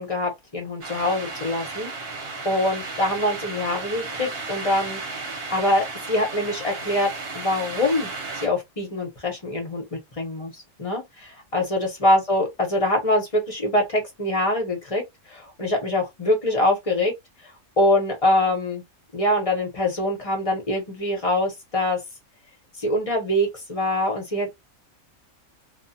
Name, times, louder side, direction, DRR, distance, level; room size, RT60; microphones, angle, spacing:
voice 1, 0.0-1.9 2.4-5.0 5.5-8.1 8.4-15.0 15.3-17.1 17.8-18.8 19.1-22.0 22.8-24.5, left 1 dB, 30° left, 0.9 m, -24 dB
sound 1, 0.8-8.5, right 3 dB, 50° right, 1.0 m, -34 dB
2.4 x 2.4 x 2.7 m
omnidirectional pair, 1.6 m